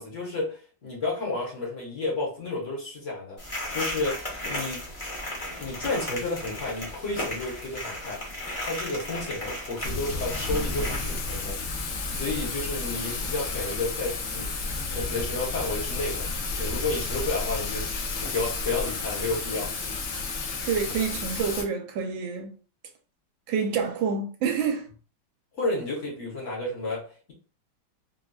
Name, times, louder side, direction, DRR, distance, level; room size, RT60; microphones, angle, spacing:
voice 1, 0.0-3.4 3.7-4.8 5.6-8.2 8.6-11.6 12.1-14.6 14.9-16.3 16.6-17.9 18.2-20.0 25.6-27.3, left 2 dB, 45° left, 1.1 m, -31 dB
sound 1, 3.4-11.5, left 1 dB, 25° left, 0.7 m, -35 dB
Thunder / Rain, 9.8-21.6, left 3 dB, 80° left, 0.7 m, -31 dB
voice 2, 20.6-22.5 23.5-24.9, right 6 dB, 80° right, 1.3 m, -27 dB
3.9 x 2.2 x 2.2 m
omnidirectional pair, 2.1 m